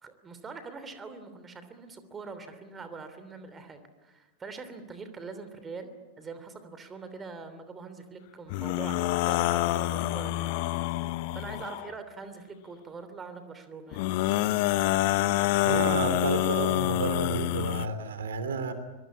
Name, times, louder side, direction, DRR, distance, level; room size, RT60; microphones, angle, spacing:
voice 1, 0.0-5.9 6.2-10.6 11.3-14.1, right 4 dB, 20° right, 10 dB, 3.1 m, -43 dB
sound 1, 8.5-11.9 13.9-17.9, left 16 dB, 50° left, 0.9 m, -27 dB
voice 2, 15.6-18.7, right 4 dB, 65° right, 11 dB, 2.6 m, -31 dB
24.5 x 23.5 x 8.6 m, 1.2 s
figure-of-eight pair, 90°, 0 cm